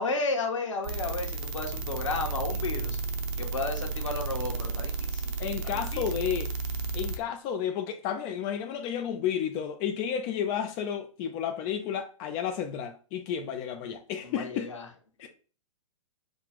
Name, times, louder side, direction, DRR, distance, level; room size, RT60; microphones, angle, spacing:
voice 1, 0.0-3.0 3.4-5.3 5.6-6.0 14.2-14.9, left 3 dB, 65° left, 1.1 m, -33 dB
sound 1, 0.8-7.2, right 4 dB, 45° right, 0.7 m, -33 dB
voice 2, 5.4-6.5 6.9-14.7 15.2-15.3, left 8 dB, 25° left, 0.3 m, -32 dB
5.1 x 2.3 x 3.5 m
figure-of-eight pair, 110°, 17 cm